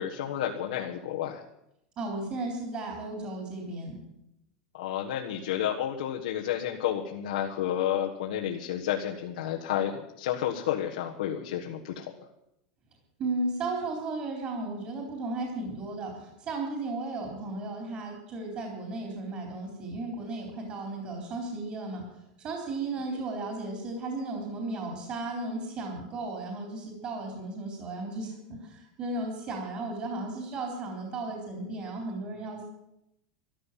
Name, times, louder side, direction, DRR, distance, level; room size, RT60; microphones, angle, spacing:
voice 1, 0.0-1.4 4.7-12.1 23.1-23.2, left 10 dB, 90° left, 0 dB, 1.5 m, -31 dB
voice 2, 2.0-4.0 13.2-22.0 22.4-32.6, right 2 dB, 30° right, 0 dB, 3.7 m, -35 dB
14.0 x 12.0 x 7.4 m, 0.84 s
supercardioid pair, 160°, 4 cm